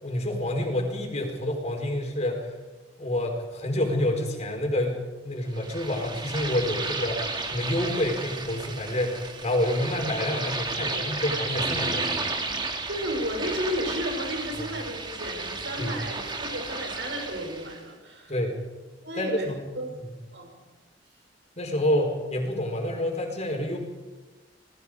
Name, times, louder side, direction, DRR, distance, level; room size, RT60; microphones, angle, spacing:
voice 1, 0.0-2.5 3.0-12.2 15.8-15.9 18.3-18.6 19.2-19.6 20.0-20.1 21.6-23.8, left 1 dB, 40° left, 2 dB, 4.6 m, -28 dB
sound 1, 5.5-17.8, right 3 dB, 25° right, 2.3 m, -33 dB
voice 2, 12.9-18.4 19.0-19.9 20.3-20.6, equal, 75° right, 2 dB, 6.4 m, -33 dB
28.0 x 19.5 x 4.9 m, 1.2 s
head